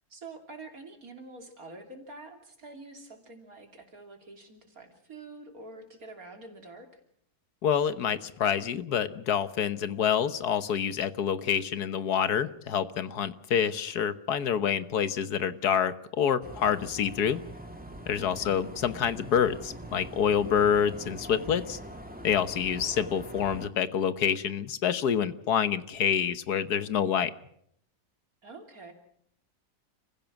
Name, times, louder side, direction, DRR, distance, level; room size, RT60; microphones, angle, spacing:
voice 1, 0.1-7.0 18.2-18.7 28.4-28.9, right 2 dB, 65° right, 4 dB, 3.6 m, -47 dB
voice 2, 7.6-17.4 18.1-21.8 22.2-27.3, left 8 dB, 85° left, 13 dB, 1.6 m, -27 dB
sound 1, 16.4-23.7, equal, 5° right, 2.2 m, -43 dB
30.0 x 16.0 x 5.9 m, 0.71 s
omnidirectional pair, 1.6 m